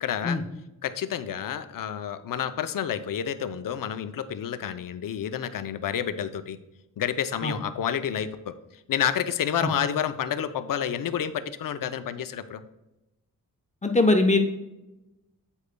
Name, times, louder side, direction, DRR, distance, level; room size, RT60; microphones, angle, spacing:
voice 1, 0.0-0.4 0.8-6.6 7.0-8.5 8.9-12.6, left 9 dB, 70° left, 11 dB, 0.6 m, -29 dB
voice 2, 13.8-14.4, left 2 dB, 20° left, 4 dB, 0.7 m, -21 dB
8.2 x 8.1 x 2.2 m, 0.97 s
wide cardioid pair, 125°, 35 cm